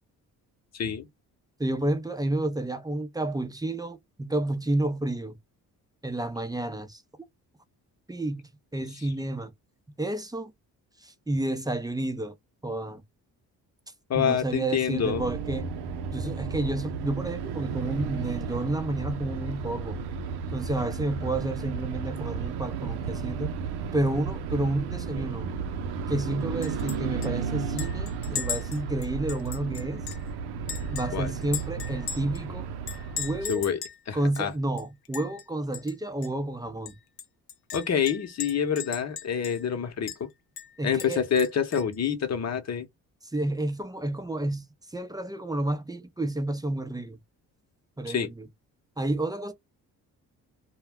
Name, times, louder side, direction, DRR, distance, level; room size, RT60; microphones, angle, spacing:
voice 1, 0.7-1.1 14.1-15.2 31.1-31.3 33.5-33.8 34.1-34.5 37.7-40.3 40.8-42.9 48.1-48.3, left 7 dB, 45° left, 0.9 m, -27 dB
voice 2, 1.6-5.3 6.0-7.0 8.1-9.5 10.0-10.5 11.0-12.3 12.6-13.0 14.1-15.7 16.1-20.0 20.5-23.6 23.9-25.5 26.1-30.0 30.9-32.7 33.2-33.5 34.1-37.0 40.8-41.2 43.3-47.2 48.0-48.5 49.0-49.5, right 1 dB, 10° right, 0.5 m, -30 dB
sound 1, 14.9-33.6, right 5 dB, 85° right, 0.6 m, -33 dB
Chink clink, 26.6-27.0 27.2-27.3 27.8-30.3 30.7-32.4 32.9-34.0 34.3-34.4 34.8-35.4 35.7-35.9 36.2-36.3 36.9-39.7 40.1-40.2 40.6-41.9, left 8 dB, 70° left, 0.7 m, -38 dB
2.2 x 2.2 x 3.4 m
cardioid pair, 75°, 38 cm